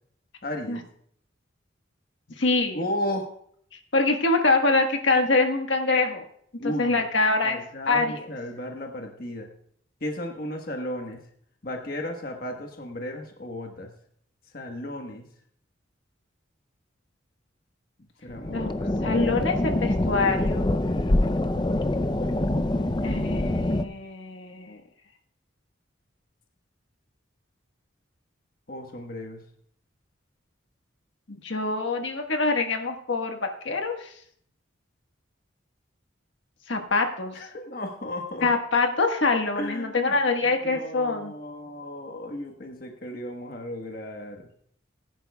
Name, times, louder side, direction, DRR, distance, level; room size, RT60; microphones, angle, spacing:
voice 1, 0.4-0.8 2.7-3.3 6.6-7.1 7.4-9.5 10.0-11.2 11.6-13.9 14.5-15.2 18.2-18.9 28.7-29.4 37.3-38.5 39.5-40.2 40.4-44.5, left 1 dB, 50° left, 2 dB, 1.3 m, -34 dB
voice 2, 2.4-2.8 3.9-6.2 6.8-7.6 7.9-8.2 18.5-18.7 19.0-20.7 23.0-24.8 31.3-34.1 36.7-37.4 38.4-41.3, left 3 dB, 75° left, 3 dB, 1.5 m, -24 dB
sound 1, 18.3-23.8, left 1 dB, 25° left, 0.5 m, -25 dB
20.0 x 11.0 x 2.3 m, 0.65 s
head